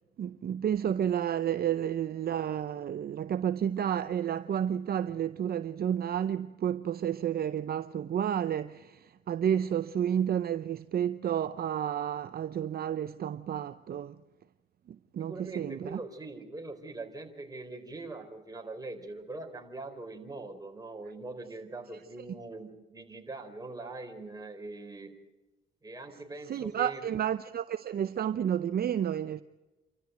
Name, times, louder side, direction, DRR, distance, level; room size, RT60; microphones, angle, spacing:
voice 1, 0.2-14.2 14.9-16.0 22.2-22.3 26.1-29.4, right 9 dB, 50° right, 0.7 m, -31 dB
voice 2, 15.2-25.1 25.8-27.1, right 2 dB, 20° right, 4.2 m, -42 dB
29.0 x 13.5 x 9.3 m
cardioid pair, 90°, 20 cm